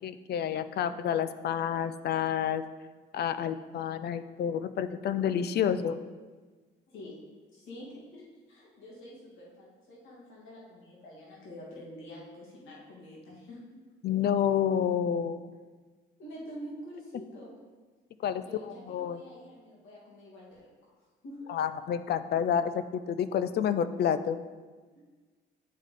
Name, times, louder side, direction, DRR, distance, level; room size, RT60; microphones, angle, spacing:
voice 1, 0.0-2.6 3.1-6.0 14.0-15.4 18.2-19.2 21.5-24.4, left 8 dB, 55° left, 12 dB, 0.4 m, -29 dB
voice 2, 6.9-7.2 7.5-13.8 16.2-17.5 18.4-21.5 24.9-25.0, equal, 80° left, -5 dB, 2.2 m, -47 dB
10.0 x 3.5 x 3.7 m, 1.4 s
cardioid pair, 85°, 20 cm